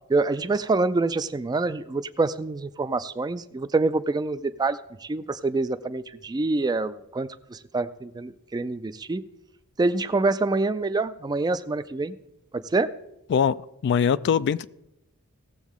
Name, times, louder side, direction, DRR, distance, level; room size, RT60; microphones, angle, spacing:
voice 1, 0.1-9.2 9.8-12.1 12.5-13.0, right 3 dB, 20° right, 0.4 m, -26 dB
voice 2, 13.8-14.7, left 7 dB, 55° left, 0.3 m, -21 dB
17.5 x 7.1 x 3.6 m
head